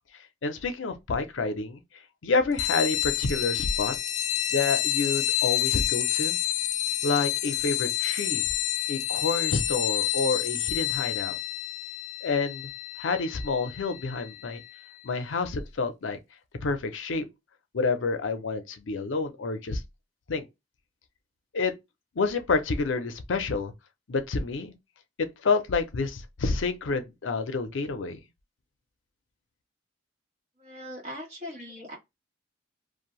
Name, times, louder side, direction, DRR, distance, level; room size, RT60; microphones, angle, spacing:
voice 1, 0.4-1.8 2.2-3.9 4.5-6.4 7.0-8.5 8.9-11.4 12.2-12.7 13.0-14.6 15.0-16.2 16.6-17.3 17.7-19.8 20.3-20.4 21.5-21.7 22.2-23.7 24.1-24.7 25.2-28.2, left 4 dB, 80° left, 0.6 m, -28 dB
sound 1, 2.6-14.7, left 14 dB, 40° left, 0.3 m, -29 dB
voice 2, 30.6-32.0, equal, 35° right, 1.3 m, -40 dB
2.6 x 2.2 x 3.0 m
head